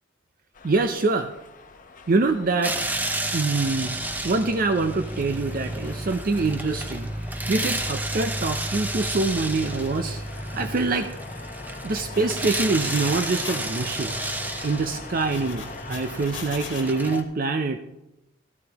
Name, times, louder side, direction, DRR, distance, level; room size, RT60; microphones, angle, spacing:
sound 1, 0.5-17.2, left 4 dB, 45° left, 0.8 m, -42 dB
voice 1, 0.6-1.3 2.1-2.8 3.3-4.0 4.2-7.1 7.5-10.2 10.5-11.1 11.8-14.1 14.6-17.8, right 3 dB, 50° right, 7 dB, 0.5 m, -25 dB
sound 2, 2.6-17.2, right 1 dB, 10° right, 0.7 m, -31 dB
sound 3, 4.5-4.7 6.0-6.9 7.7-7.8 8.1-9.2 9.5-10.4 10.7-11.0 11.9-13.7 14.1-14.5 15.1-16.8, left 6 dB, 90° left, 1.5 m, -43 dB
13.0 x 12.5 x 2.9 m, 0.92 s
head